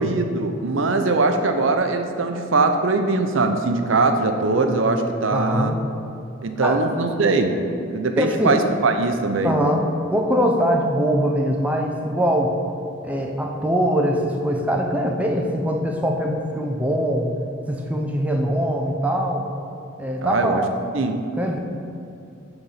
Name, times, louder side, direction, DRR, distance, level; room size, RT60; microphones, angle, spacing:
voice 1, 0.0-5.7 6.4-7.6 7.9-9.7 20.2-20.6 20.9-21.2, right 3 dB, 75° right, 6 dB, 0.7 m, -21 dB
voice 2, 5.3-5.8 6.6-6.8 8.2-8.6 9.4-9.8 10.1-12.5 13.0-17.3 17.7-19.5 20.0-20.7 21.4-21.6, equal, 5° right, 1 dB, 0.7 m, -22 dB
8.9 x 4.0 x 5.7 m, 2.6 s
head